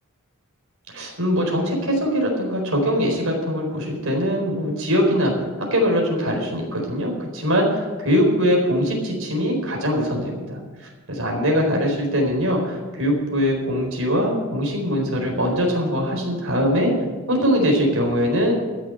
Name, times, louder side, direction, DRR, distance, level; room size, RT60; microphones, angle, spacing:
voice 1, 0.9-5.3 5.6-16.9 17.3-18.5, equal, 70° right, 0 dB, 4.3 m, -22 dB
14.0 x 7.2 x 9.1 m, 1.4 s
head